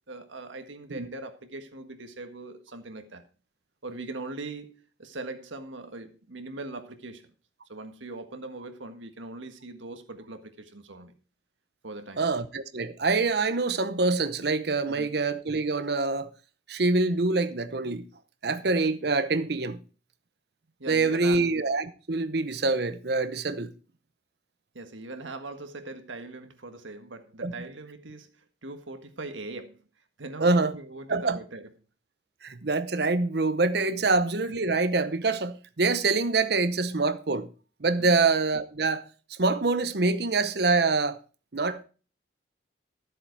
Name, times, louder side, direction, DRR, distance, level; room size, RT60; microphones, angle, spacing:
voice 1, 0.0-3.2 3.8-7.2 7.7-11.1 11.8-12.4 14.9-15.1 20.8-21.4 24.7-28.3 28.6-29.8 30.2-31.6 33.9-34.1 38.0-38.2, right 2 dB, 85° right, 1.6 m, -41 dB
voice 2, 12.2-16.3 16.7-18.0 18.4-19.8 20.9-23.7 27.4-27.5 30.4-30.8 31.1-31.4 32.4-37.5 37.8-41.2 41.5-41.8, right 3 dB, 55° right, 0.8 m, -25 dB
13.0 x 7.6 x 4.6 m
head